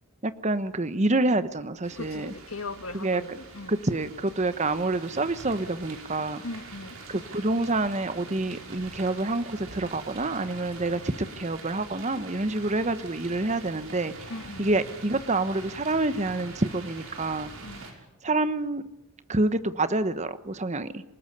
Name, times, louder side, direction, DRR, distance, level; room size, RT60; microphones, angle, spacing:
voice 1, 0.2-2.3 2.9-3.4 3.7-6.4 7.1-14.1 14.6-17.5 18.2-18.8 19.3-21.0, right 2 dB, 30° right, 12 dB, 1.1 m, -27 dB
sound 1, 1.8-17.9, right 3 dB, 65° right, 5.8 m, -44 dB
voice 2, 1.9-3.8 6.4-7.0 14.3-14.7 17.6-17.8, left 3 dB, 70° left, 9 dB, 1.8 m, -39 dB
27.0 x 19.0 x 9.8 m, 0.89 s
head